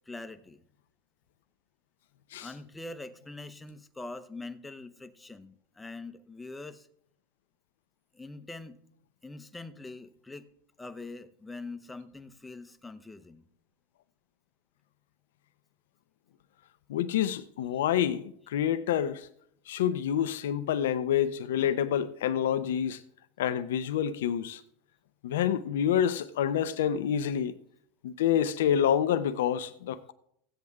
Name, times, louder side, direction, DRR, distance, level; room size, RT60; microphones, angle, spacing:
voice 1, 0.1-0.6 2.4-6.9 8.1-8.8 9.2-10.5 10.8-13.5, left 2 dB, 10° left, 0.9 m, -43 dB
voice 2, 16.9-19.3 19.7-23.0 23.4-24.6 25.2-27.5 28.0-30.1, left 9 dB, 80° left, 0.6 m, -28 dB
16.0 x 7.9 x 3.6 m
hypercardioid pair, 110°, 0 cm